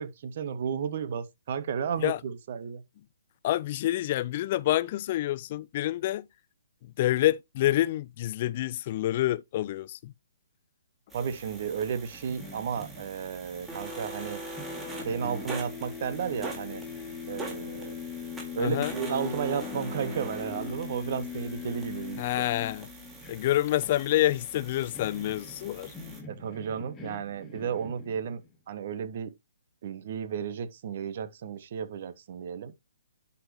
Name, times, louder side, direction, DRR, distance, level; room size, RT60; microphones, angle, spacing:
voice 1, 0.0-2.8 11.1-14.4 15.0-16.8 17.3-18.0 18.5-22.5 26.3-28.4 28.7-29.3 29.8-32.7, right 7 dB, 50° right, 1.4 m, -33 dB
voice 2, 3.4-6.2 6.8-10.1 18.6-18.9 22.2-22.9 23.3-25.9, left 14 dB, 40° left, 0.4 m, -27 dB
sound 1, 11.1-26.2, right 2 dB, 10° right, 3.9 m, -43 dB
sound 2, 12.1-14.3 14.6-28.5, left 7 dB, 15° left, 2.0 m, -42 dB
11.0 x 5.7 x 3.0 m
figure-of-eight pair, 135°, 0 cm